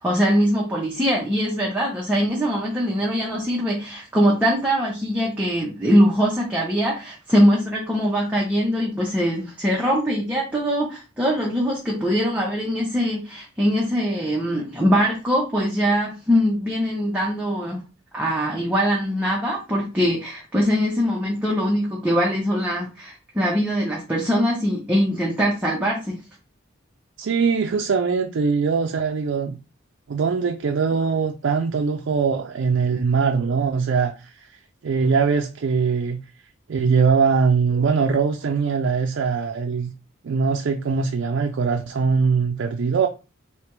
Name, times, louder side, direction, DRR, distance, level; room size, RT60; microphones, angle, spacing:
voice 1, 0.0-17.8 18.1-26.2, equal, 5° right, 0.7 m, -22 dB
voice 2, 27.2-29.6 30.1-34.6 34.8-36.2 36.7-39.9 40.2-43.1, right 5 dB, 65° right, 0.4 m, -22 dB
3.3 x 2.8 x 4.5 m
head